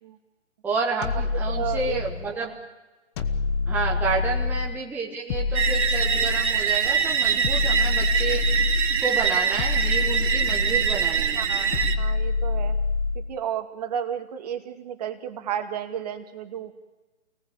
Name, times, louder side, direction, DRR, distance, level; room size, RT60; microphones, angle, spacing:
voice 1, 0.6-2.5 3.7-8.4 9.0-11.5, right 4 dB, 5° right, -3 dB, 1.5 m, -30 dB
sound 1, 1.0-2.3 3.2-4.8 5.3-6.7 7.4-9.1 9.6-11.0 11.7-13.3, left 4 dB, 20° left, 1.2 m, -26 dB
voice 2, 1.5-2.0 2.3-2.5 4.0-4.2 11.4-12.8 13.3-16.7, right 9 dB, 35° right, 7 dB, 2.1 m, -32 dB
sound 2, 5.5-12.0, right 7 dB, 60° right, 3.4 m, -24 dB
28.5 x 19.0 x 8.8 m, 1.2 s
hypercardioid pair, 150°, 36 cm